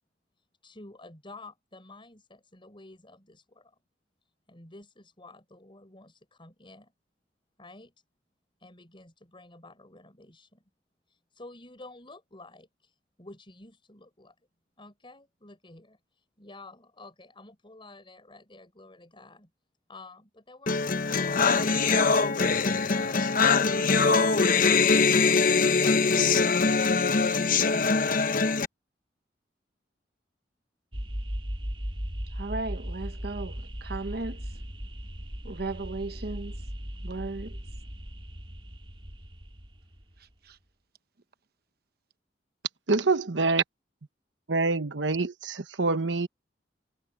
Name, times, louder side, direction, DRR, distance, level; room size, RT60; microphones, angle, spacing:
voice 1, 0.6-3.8 4.5-6.9 7.6-7.9 8.6-10.6 11.1-14.3 14.8-19.5 19.9-21.7 22.9-24.6, left 2 dB, 30° left, 6.2 m, -50 dB
sound 1, 20.7-28.6, left 4 dB, 50° left, 1.0 m, -23 dB
sound 2, 30.9-40.2, equal, 30° right, 3.0 m, -37 dB
voice 2, 32.3-34.5 35.4-36.6 37.0-37.6 40.4-40.6, right 3 dB, 60° right, 0.9 m, -36 dB
voice 3, 42.9-43.6 44.5-46.3, right 3 dB, 90° right, 1.1 m, -26 dB
head